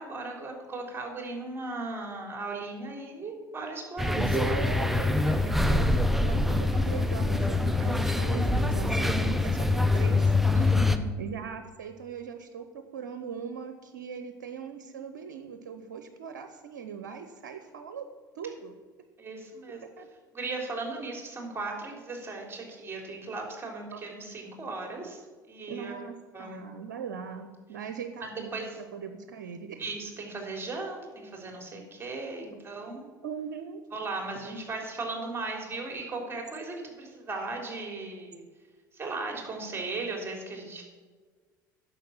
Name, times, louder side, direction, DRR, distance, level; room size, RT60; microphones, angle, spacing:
voice 1, 0.0-4.6 10.5-11.1 19.2-19.8 20.3-25.9 26.3-26.6 28.2-28.8 29.8-33.0 33.9-38.4 38.9-40.8, right 3 dB, 25° right, 1 dB, 3.5 m, -37 dB
sound 1, 4.0-11.0, left 2 dB, ahead, 0.8 m, -24 dB
voice 2, 4.2-5.9 6.1-10.4 11.2-18.1 18.3-18.7 20.0-20.1 23.9-24.0 25.7-26.1 26.4-29.8 33.2-33.8, right 7 dB, 75° right, 8 dB, 0.8 m, -40 dB
10.0 x 6.9 x 7.3 m, 1.4 s
figure-of-eight pair, 65°, 10 cm